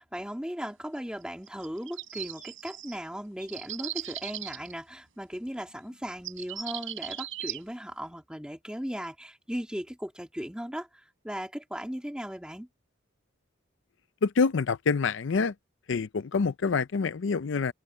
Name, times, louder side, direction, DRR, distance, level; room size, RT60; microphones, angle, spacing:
voice 1, 0.0-12.7, equal, 5° right, 2.1 m, -37 dB
sound 1, 1.5-3.0 3.4-4.7 5.9-6.0 6.2-7.6, right 10 dB, 80° right, 3.3 m, -38 dB
voice 2, 14.2-15.5 15.9-17.7, left 4 dB, 65° left, 0.5 m, -26 dB
head